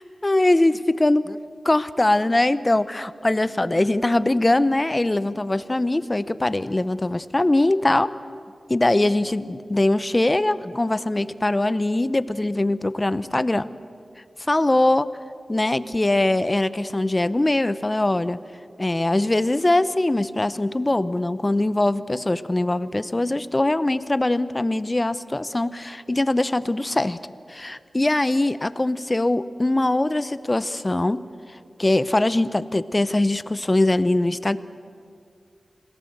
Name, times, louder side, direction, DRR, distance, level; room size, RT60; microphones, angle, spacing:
voice 1, 0.0-1.4 1.6-8.1 8.7-13.7 14.5-15.1 15.5-18.4 18.8-27.2 27.5-31.2 31.8-34.6, left 2 dB, 30° left, 15 dB, 0.7 m, -22 dB
26.5 x 17.5 x 7.9 m, 2.2 s
cardioid pair, 60°, 0 cm